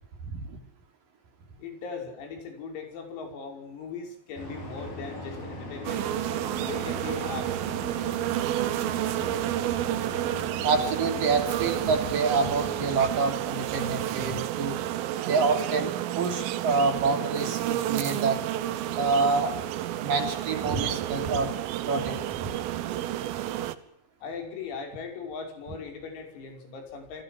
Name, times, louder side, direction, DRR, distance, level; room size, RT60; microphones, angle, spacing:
voice 1, 0.2-0.6 10.6-14.8 15.2-15.9 16.2-18.4 19.0-19.5 20.0-21.5 21.8-22.5, right 4 dB, 45° right, 6 dB, 4.6 m, -27 dB
voice 2, 1.6-6.0 6.6-7.5 24.2-27.2, left 5 dB, 90° left, 4 dB, 8.2 m, -39 dB
sound 1, 4.3-12.9, left 1 dB, 45° left, 9.1 m, -40 dB
sound 2, 5.9-23.8, right 13 dB, 80° right, 3.9 m, -30 dB
30.0 x 20.0 x 7.7 m, 0.73 s
omnidirectional pair, 5.9 m